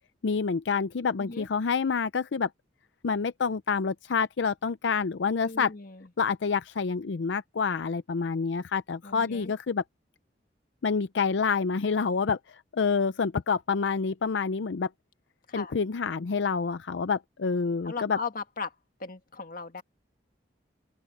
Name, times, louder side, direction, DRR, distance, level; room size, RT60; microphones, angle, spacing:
voice 1, 0.2-2.5 3.0-5.7 6.2-9.8 10.8-12.4 12.7-14.9 15.5-18.2, left 5 dB, 90° left, 0.5 m, -27 dB
voice 2, 5.4-6.1 9.0-9.5 15.5-15.8 17.8-18.7 19.0-19.8, left 4 dB, 50° left, 1.8 m, -37 dB
open air
head